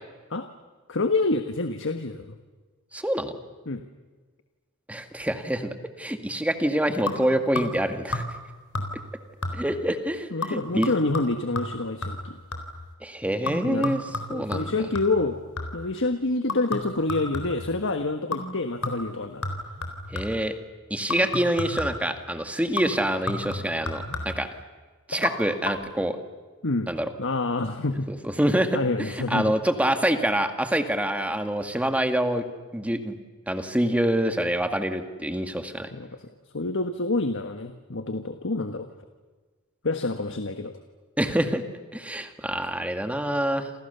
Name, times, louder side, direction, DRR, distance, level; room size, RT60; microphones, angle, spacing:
voice 1, 0.9-2.3 3.7-3.8 10.3-12.4 13.6-13.9 14.3-15.4 15.7-19.4 26.6-26.9 27.2-28.1 28.7-29.5 35.9-36.1 36.5-38.9 39.8-40.7, left 2 dB, 60° left, 7 dB, 1.5 m, -27 dB
voice 2, 2.9-3.4 4.9-8.2 9.5-10.9 13.0-14.0 14.3-14.7 20.1-20.5 20.9-24.5 25.1-26.2 26.9-27.1 28.1-32.4 32.7-33.1 33.5-35.9 41.2-41.6 41.9-43.7, right 1 dB, 5° right, 7 dB, 2.0 m, -26 dB
sound 1, 7.1-7.9 8.1-8.5 8.7-9.1 9.4-9.9 10.4-12.8 13.5-15.9 16.5-17.8 18.3-18.6 18.8-20.5 21.1-22.1 22.8-24.5 25.1-25.3 25.6-25.7, left 2 dB, 80° left, 3.9 m, -33 dB
28.5 x 28.0 x 6.9 m, 1.3 s
head